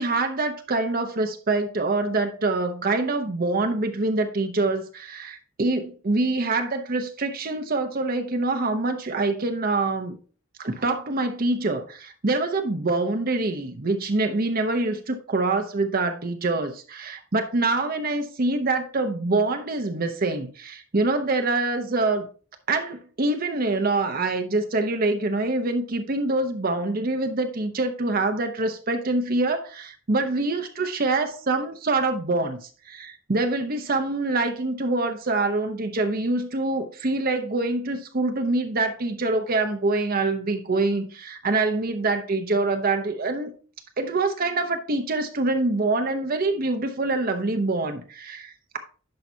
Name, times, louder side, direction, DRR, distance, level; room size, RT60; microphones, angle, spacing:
voice 1, 0.0-10.2 10.6-22.3 22.7-43.5 44.0-48.8, right 2 dB, 45° right, 0.8 m, -25 dB
10.5 x 5.6 x 2.7 m
head